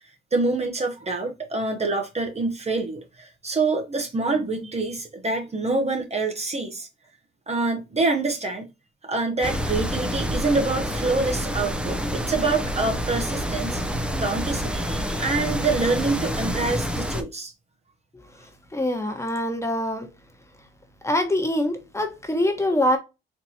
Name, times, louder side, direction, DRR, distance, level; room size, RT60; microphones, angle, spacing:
voice 1, 0.3-6.9 7.5-8.7 9.0-13.8 14.2-17.5, right 3 dB, 30° right, 0.9 m, -26 dB
sound 1, 9.4-17.2, equal, 5° right, 0.7 m, -28 dB
voice 2, 18.4-20.1 21.0-23.0, left 1 dB, 15° left, 1.2 m, -24 dB
4.4 x 2.9 x 2.8 m
cardioid pair, 70°, 21 cm